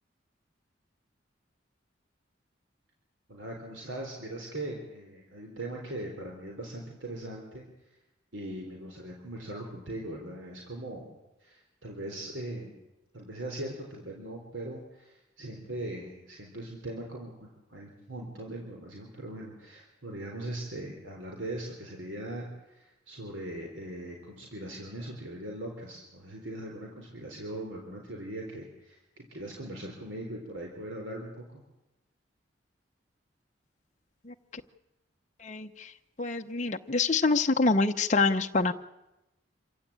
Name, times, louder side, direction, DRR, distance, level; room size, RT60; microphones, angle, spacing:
voice 1, 3.3-7.7 8.3-11.2 11.4-12.7 13.1-29.0 29.3-31.6, right 1 dB, 85° right, 0 dB, 3.8 m, -40 dB
voice 2, 36.2-38.7, left 3 dB, 40° left, 5 dB, 0.8 m, -25 dB
26.5 x 15.5 x 8.7 m, 0.96 s
head